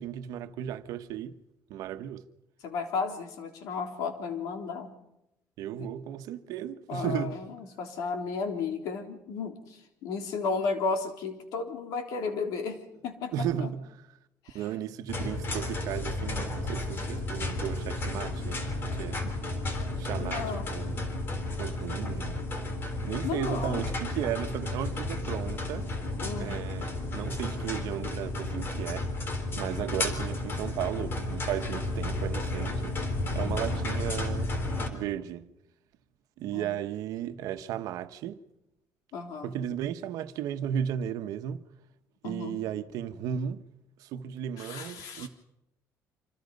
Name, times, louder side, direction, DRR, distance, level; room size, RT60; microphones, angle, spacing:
voice 1, 0.0-1.4 1.7-2.2 5.6-7.5 13.3-13.8 14.5-19.3 20.0-21.1 21.5-22.4 23.0-25.9 26.4-29.1 29.5-32.9 33.3-34.5 34.9-35.5 36.4-38.4 39.4-41.7 42.2-43.6 44.0-45.3, right 10 dB, 80° right, 1.2 m, -35 dB
voice 2, 2.6-4.9 6.9-13.7 14.5-14.6 20.2-20.7 23.2-23.8 26.2-26.6 33.4-33.7 36.5-36.8 39.1-39.5 42.2-42.6 44.6-45.3, left 4 dB, 85° left, 3.5 m, -34 dB
sound 1, 15.1-34.9, left 2 dB, 40° left, 3.7 m, -32 dB
26.0 x 26.0 x 5.4 m
cardioid pair, 130°, 6 cm